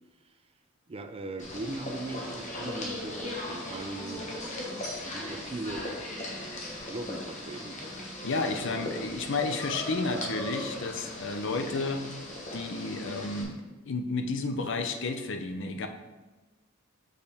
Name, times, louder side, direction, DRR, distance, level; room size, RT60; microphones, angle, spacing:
voice 1, 0.9-4.3 5.1-6.4 6.9-7.8 8.7-8.9, right 2 dB, 25° right, 7 dB, 0.4 m, -39 dB
sound 1, 1.4-13.4, left 1 dB, 35° left, 1.1 m, -38 dB
voice 2, 8.2-12.0 12.5-13.6 13.9-15.9, left 3 dB, 60° left, 6 dB, 0.6 m, -31 dB
6.6 x 5.2 x 3.5 m, 1.2 s
head